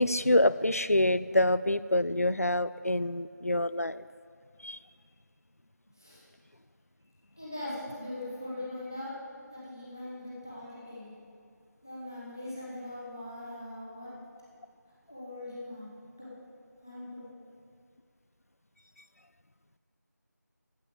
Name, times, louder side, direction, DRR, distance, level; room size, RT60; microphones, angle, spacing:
voice 1, 0.0-4.0 4.6-4.8, left 1 dB, 55° left, 16 dB, 0.4 m, -26 dB
voice 2, 5.9-6.2 7.4-9.1 9.5-11.2 11.8-14.1 15.1-16.3 16.8-17.2, left 1 dB, 10° left, -8 dB, 1.2 m, -41 dB
15.0 x 5.5 x 8.4 m, 2.2 s
figure-of-eight pair, 180°, 10 cm